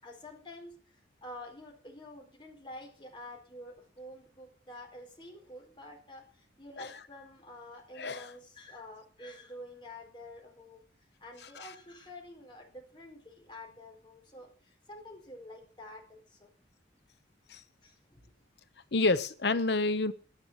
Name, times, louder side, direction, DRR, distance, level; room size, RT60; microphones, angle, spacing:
voice 1, 0.0-10.8 11.2-16.5 17.8-18.3, left 1 dB, 25° left, 4.4 m, -48 dB
voice 2, 8.0-8.3 11.6-11.7 17.5-17.6 18.9-20.1, left 3 dB, 65° left, 0.8 m, -29 dB
11.5 x 10.5 x 8.0 m
head